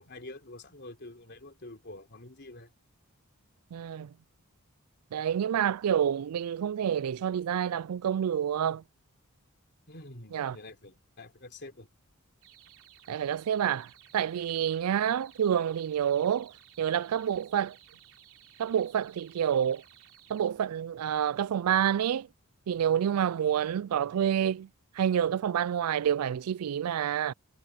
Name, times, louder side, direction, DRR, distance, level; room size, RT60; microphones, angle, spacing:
voice 1, 0.0-2.7 9.9-11.9, left 2 dB, 50° left, 3.6 m, -47 dB
voice 2, 3.7-4.1 5.1-8.8 10.3-10.6 13.1-16.5 16.8-17.8 18.6-19.8 20.3-22.3 22.7-24.7 25.0-27.3, right 9 dB, 85° right, 0.4 m, -28 dB
sound 1, 12.4-20.5, right 11 dB, 65° right, 4.2 m, -57 dB
head